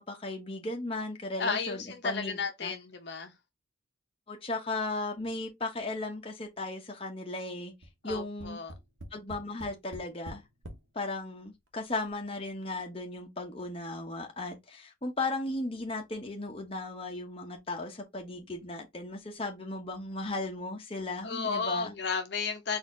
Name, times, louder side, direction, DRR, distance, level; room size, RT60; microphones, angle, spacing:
voice 1, 0.0-2.7 4.3-7.7 8.0-8.6 9.1-10.4 10.9-21.9, left 2 dB, 25° left, 0.8 m, -36 dB
voice 2, 1.4-3.3 8.0-8.7 21.2-22.8, left 5 dB, 55° left, 0.8 m, -33 dB
Tap, 7.8-10.9 11.7-11.8 12.1-12.2, right 1 dB, 70° right, 1.0 m, -45 dB
4.2 x 2.6 x 3.7 m
head